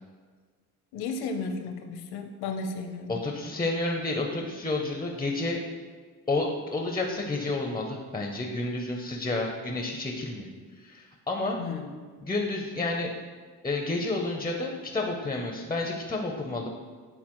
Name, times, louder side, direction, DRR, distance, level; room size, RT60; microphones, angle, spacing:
voice 1, 0.9-3.2 11.6-11.9, left 4 dB, 85° left, 5 dB, 0.8 m, -34 dB
voice 2, 3.1-5.6 6.3-10.5 10.8-11.6 12.2-13.1 13.6-16.7, left 2 dB, 15° left, 1 dB, 0.5 m, -30 dB
9.7 x 3.9 x 3.0 m, 1.5 s
cardioid pair, 130°, 37 cm